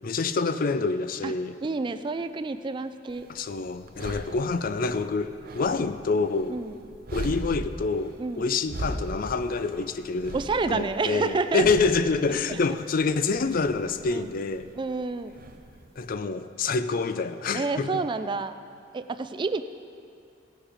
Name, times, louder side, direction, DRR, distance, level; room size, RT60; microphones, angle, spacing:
voice 1, 0.0-1.6 3.3-6.6 7.1-10.4 10.7-14.7 16.0-17.9, left 4 dB, 50° left, 11 dB, 0.4 m, -27 dB
voice 2, 1.6-3.3 6.5-6.8 8.2-8.5 10.3-11.7 12.5-12.6 14.1-14.3 14.7-15.3 17.5-18.6 18.9-19.6, right 3 dB, 25° right, 11 dB, 0.3 m, -29 dB
sound 1, 3.1-16.1, right 1 dB, 50° right, 0.7 m, -40 dB
17.0 x 6.3 x 4.9 m, 2.4 s
head